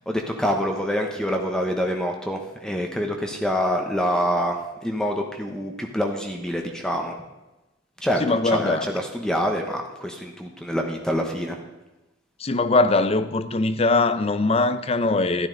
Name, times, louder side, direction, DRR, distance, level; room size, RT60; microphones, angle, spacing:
voice 1, 0.1-7.1 8.0-11.5, equal, 5° left, 0.9 m, -26 dB
voice 2, 8.2-8.9 12.4-15.5, left 3 dB, 30° left, 0.6 m, -21 dB
12.5 x 11.5 x 3.9 m
head